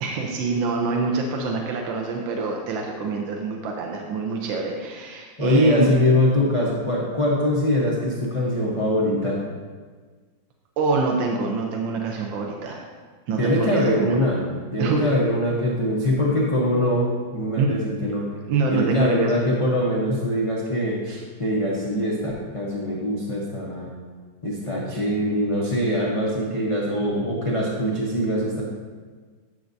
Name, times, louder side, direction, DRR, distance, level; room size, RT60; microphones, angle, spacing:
voice 1, 0.0-5.9 10.8-12.8 13.3-14.1 14.8-15.1 17.6-17.7 18.5-19.4, right 4 dB, 85° right, 1 dB, 1.4 m, -25 dB
voice 2, 5.4-9.4 13.4-18.2 18.7-23.9 24.4-28.6, left 1 dB, 40° left, -5 dB, 0.4 m, -23 dB
9.2 x 6.2 x 2.6 m, 1.5 s
omnidirectional pair, 2.0 m